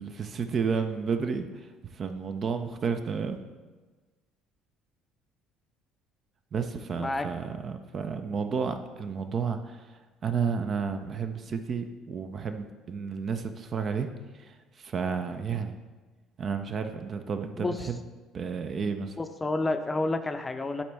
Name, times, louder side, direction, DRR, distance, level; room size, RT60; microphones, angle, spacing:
voice 1, 0.0-3.4 6.5-14.1 14.3-15.7 16.4-18.0 18.3-19.2, right 5 dB, 40° right, 8 dB, 0.5 m, -32 dB
voice 2, 17.6-17.9 19.2-20.8, left 2 dB, 20° left, 8 dB, 0.6 m, -29 dB
11.5 x 4.2 x 3.4 m, 1.3 s
figure-of-eight pair, 55°, 0 cm